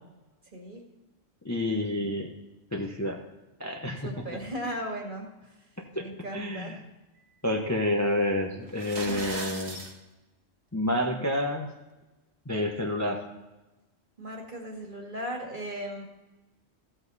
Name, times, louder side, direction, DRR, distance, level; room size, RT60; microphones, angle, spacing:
voice 1, 1.4-2.3 2.7-3.2 3.6-4.1 5.9-6.0 6.3-6.8 7.4-9.8 10.7-11.7 12.5-13.2, left 1 dB, 15° left, 1 dB, 0.9 m, -29 dB
voice 2, 4.0-5.3 6.0-6.8 14.2-16.0, equal, 40° right, 1 dB, 2.0 m, -36 dB
sound 1, 8.7-9.9, right 3 dB, 60° right, 1.6 m, -37 dB
14.5 x 8.0 x 4.1 m, 1.1 s
omnidirectional pair, 1.3 m